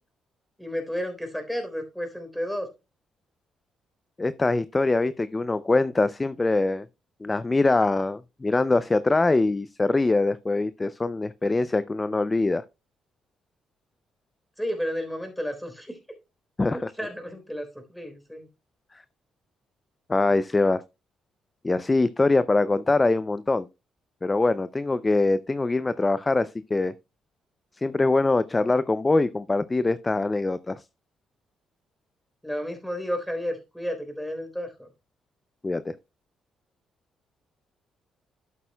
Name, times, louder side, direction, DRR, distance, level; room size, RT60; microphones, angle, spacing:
voice 1, 0.6-2.7 14.6-16.0 17.0-18.5 32.4-34.9, equal, ahead, 3.7 m, -32 dB
voice 2, 4.2-6.9 7.2-12.6 16.6-16.9 18.9-19.0 20.1-20.8 21.6-23.7 24.2-26.9 27.8-30.8 35.6-35.9, left 3 dB, 20° left, 0.4 m, -23 dB
12.0 x 8.2 x 2.2 m
cardioid pair, 90°, 0 cm